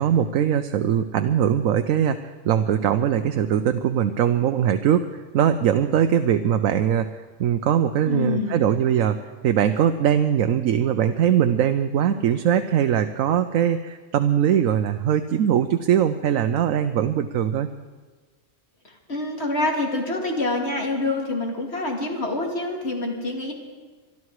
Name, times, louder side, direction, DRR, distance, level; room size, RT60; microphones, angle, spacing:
voice 1, 0.0-7.1 7.4-17.7, right 9 dB, 90° right, 8 dB, 1.1 m, -21 dB
voice 2, 8.1-8.6 19.1-23.5, left 2 dB, 55° left, 1 dB, 2.6 m, -26 dB
25.0 x 12.0 x 4.8 m, 1.4 s
omnidirectional pair, 1.4 m